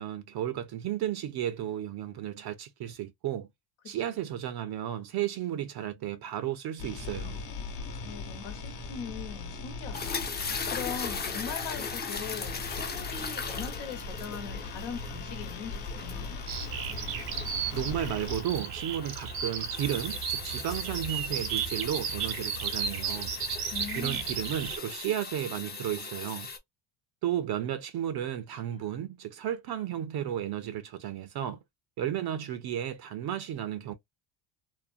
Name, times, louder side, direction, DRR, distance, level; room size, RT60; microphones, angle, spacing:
voice 1, 0.0-3.5 3.8-7.5 17.7-23.3 24.0-26.5 27.2-31.6 32.0-33.9, right 11 dB, 50° right, 0.5 m, -33 dB
sound 1, 6.8-18.4, left 3 dB, 60° left, 1.0 m, -39 dB
voice 2, 8.0-16.4 23.7-24.3 28.5-28.8, left 7 dB, 80° left, 1.0 m, -41 dB
sound 2, 9.9-26.6, left 5 dB, 20° left, 0.5 m, -39 dB
Bird vocalization bird call bird song, 16.5-24.8, right 7 dB, 85° right, 1.0 m, -34 dB
2.6 x 2.1 x 2.4 m
cardioid pair, 90°, 48 cm